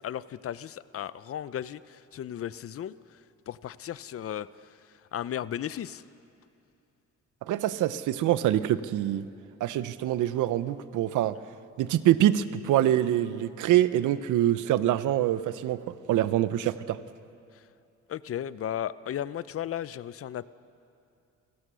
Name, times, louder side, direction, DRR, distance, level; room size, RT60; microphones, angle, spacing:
voice 1, 0.0-3.2 3.5-4.8 5.1-6.0 17.5-17.6 18.1-20.5, left 10 dB, 50° left, 17 dB, 0.6 m, -35 dB
voice 2, 7.4-9.2 9.6-11.4 11.8-17.0, right 12 dB, 80° right, 14 dB, 0.8 m, -25 dB
28.5 x 16.5 x 6.3 m, 2.6 s
cardioid pair, 90°, 30 cm